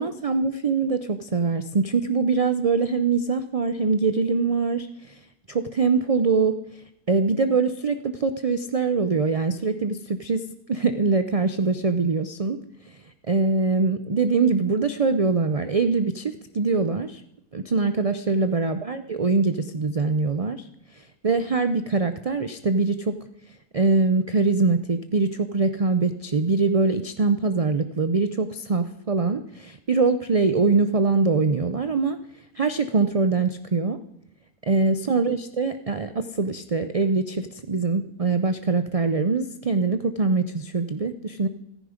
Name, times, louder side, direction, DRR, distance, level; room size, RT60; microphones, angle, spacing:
voice 1, 0.0-4.9 5.5-6.5 7.1-10.4 10.7-12.6 12.9-13.0 13.3-17.2 17.5-20.7 21.2-23.1 23.7-32.2 32.6-34.0 34.6-41.5, right 4 dB, 45° right, 10 dB, 0.4 m, -23 dB
15.5 x 14.0 x 5.1 m, 0.81 s
omnidirectional pair, 1.6 m